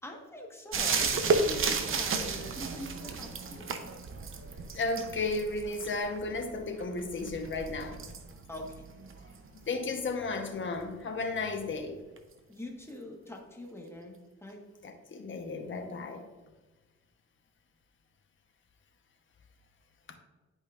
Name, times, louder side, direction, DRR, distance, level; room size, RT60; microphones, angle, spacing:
voice 1, 0.0-3.9 8.5-8.8 12.5-14.6, left 1 dB, 10° left, 0 dB, 1.4 m, -44 dB
sound 1, 0.7-10.1 12.2-12.3, right 4 dB, 45° right, 0.8 m, -33 dB
voice 2, 4.7-8.0 9.7-12.0 14.8-16.2 20.1-20.2, left 3 dB, 40° left, 5 dB, 1.1 m, -34 dB
10.5 x 5.1 x 2.5 m, 1.2 s
cardioid pair, 90°, 30 cm